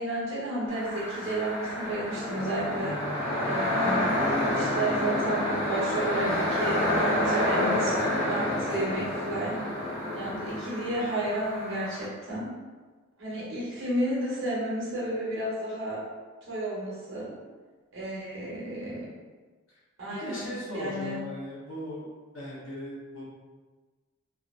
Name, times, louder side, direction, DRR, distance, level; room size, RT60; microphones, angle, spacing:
voice 1, 0.0-2.9 3.4-4.2 4.5-9.6 10.1-12.5 13.2-16.0 16.4-17.3 17.9-19.1 20.0-20.4 20.7-21.2, right 1 dB, 70° right, -7 dB, 0.9 m, -32 dB
sound 1, 0.7-12.0, left 1 dB, 30° left, 0.8 m, -28 dB
voice 2, 20.0-22.1 22.3-23.2, equal, 80° left, -6 dB, 0.7 m, -38 dB
2.7 x 2.1 x 2.4 m, 1.4 s
head